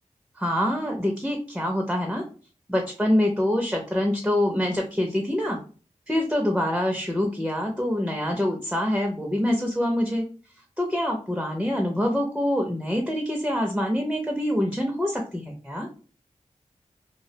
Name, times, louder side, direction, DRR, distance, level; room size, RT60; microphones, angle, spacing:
voice 1, 0.4-2.2 2.7-5.6 6.1-10.3 10.8-15.9, left 1 dB, 5° right, 2 dB, 0.5 m, -25 dB
2.3 x 2.0 x 2.7 m, 0.38 s
cardioid pair, 50°, 13 cm